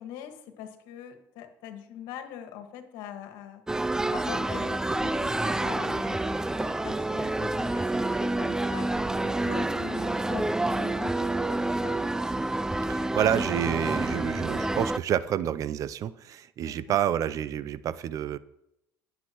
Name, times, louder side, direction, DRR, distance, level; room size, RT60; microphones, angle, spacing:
voice 1, 0.0-3.6 4.1-6.3 6.8-11.2 11.5-12.0 16.7-17.0, left 9 dB, 75° left, 6 dB, 1.8 m, -43 dB
sound 1, 3.7-15.0, right 2 dB, 10° right, 0.4 m, -28 dB
voice 2, 12.9-18.4, right 10 dB, 55° right, 17 dB, 0.5 m, -28 dB
21.5 x 8.1 x 3.1 m, 0.83 s
supercardioid pair, 85°, 7 cm